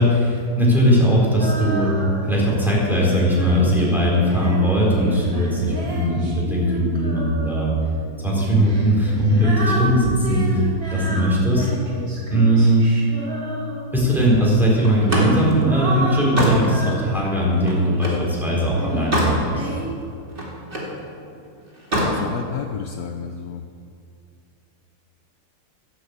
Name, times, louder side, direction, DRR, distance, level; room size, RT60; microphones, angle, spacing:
voice 1, 0.0-1.9 2.2-7.7 8.2-11.7 12.3-12.8 13.9-19.7, equal, ahead, -5 dB, 4.0 m, -19 dB
Female singing, 1.4-2.4 3.0-7.8 8.6-14.1 14.9-18.0 18.7-19.8, right 2 dB, 45° right, 2.7 m, -31 dB
Slam, 14.8-18.3 18.7-19.4 19.8-21.0 21.7-22.2, equal, 25° right, 2.6 m, -25 dB
voice 2, 21.9-23.7, left 7 dB, 70° left, 6 dB, 0.9 m, -31 dB
12.0 x 10.0 x 8.2 m, 2.4 s
omnidirectional pair, 2.2 m